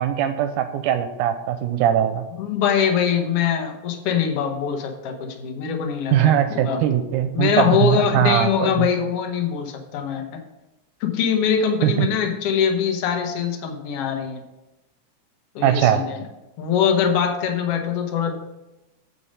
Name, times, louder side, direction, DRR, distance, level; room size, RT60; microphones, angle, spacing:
voice 1, 0.0-2.2 6.1-8.9 11.8-12.1 15.6-16.0, right 10 dB, 85° right, 8 dB, 2.0 m, -20 dB
voice 2, 2.4-6.8 7.3-10.4 11.0-14.4 15.6-16.2 16.6-18.3, left 7 dB, 60° left, 4 dB, 1.8 m, -23 dB
8.6 x 5.2 x 5.5 m, 0.98 s
omnidirectional pair, 3.5 m